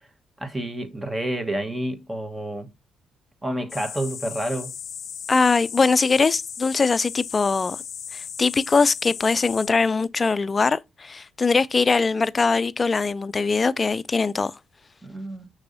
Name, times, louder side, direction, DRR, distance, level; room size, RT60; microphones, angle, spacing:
voice 1, 0.4-2.7 3.4-4.7 15.0-15.5, right 1 dB, 15° right, 1.2 m, -29 dB
sound 1, 3.7-9.7, left 7 dB, 55° left, 0.7 m, -36 dB
voice 2, 5.3-7.8 8.1-14.5, left 4 dB, 30° left, 0.3 m, -21 dB
6.0 x 3.2 x 2.6 m
cardioid pair, 90°, 0 cm